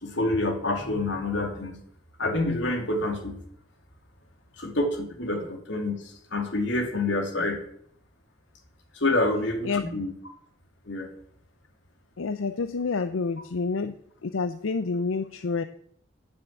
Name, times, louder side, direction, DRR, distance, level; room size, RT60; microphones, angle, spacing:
voice 1, 0.0-1.8 2.2-3.4 4.6-7.6 8.9-10.2 10.9-11.1, left 2 dB, 65° left, 3 dB, 2.7 m, -27 dB
voice 2, 12.2-14.0 14.2-15.6, left 4 dB, 90° left, 10 dB, 0.6 m, -28 dB
9.4 x 7.1 x 8.2 m, 0.66 s
head